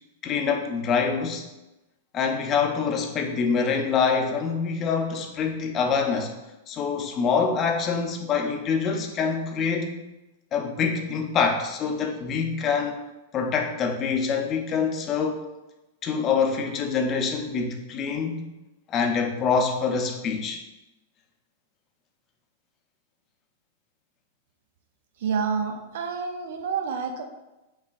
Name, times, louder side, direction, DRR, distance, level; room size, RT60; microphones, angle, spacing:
voice 1, 0.2-1.4 2.1-6.3 6.7-10.0 10.5-13.0 13.3-15.4 16.0-18.5 18.9-20.6, left 5 dB, 30° left, 3 dB, 0.5 m, -25 dB
voice 2, 25.2-27.2, right 6 dB, 60° right, 5 dB, 0.5 m, -28 dB
5.5 x 2.2 x 2.5 m, 1.0 s
figure-of-eight pair, 100°, 0 cm